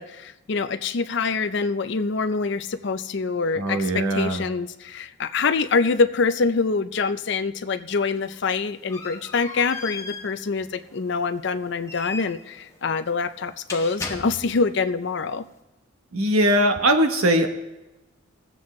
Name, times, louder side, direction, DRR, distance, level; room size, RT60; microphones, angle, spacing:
voice 1, 0.0-15.4, left 4 dB, 55° left, 10 dB, 0.5 m, -25 dB
voice 2, 3.6-4.4 16.1-17.5, right 1 dB, 85° right, 7 dB, 0.9 m, -20 dB
sound 1, 8.1-14.8, left 3 dB, 15° left, 0.9 m, -38 dB
19.0 x 7.7 x 3.2 m, 1.0 s
head